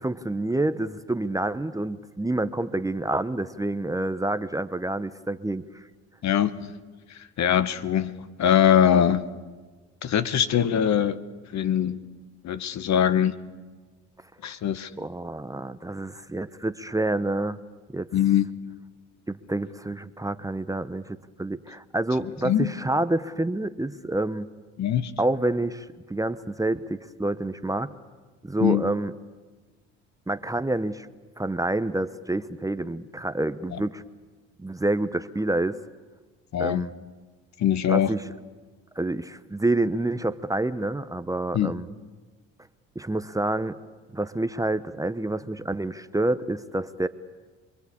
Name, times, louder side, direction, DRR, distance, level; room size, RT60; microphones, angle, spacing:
voice 1, 0.0-5.9 15.0-17.6 17.9-18.1 19.3-24.5 25.2-27.9 28.4-29.1 30.3-31.1 31.4-34.0 34.6-35.8 36.6-36.9 37.9-38.2 39.0-41.9 42.9-43.8 44.1-47.1, right 2 dB, 10° right, 1.0 m, -28 dB
voice 2, 6.2-6.7 7.1-9.3 10.0-11.2 11.5-12.0 12.4-13.4 14.4-14.9 18.1-18.5 22.4-22.7 24.8-25.1 28.6-28.8 33.7-33.8 36.5-36.9 37.6-38.1 41.5-41.7, left 9 dB, 55° left, 1.4 m, -22 dB
27.0 x 21.5 x 8.5 m
hypercardioid pair, 65°, 34 cm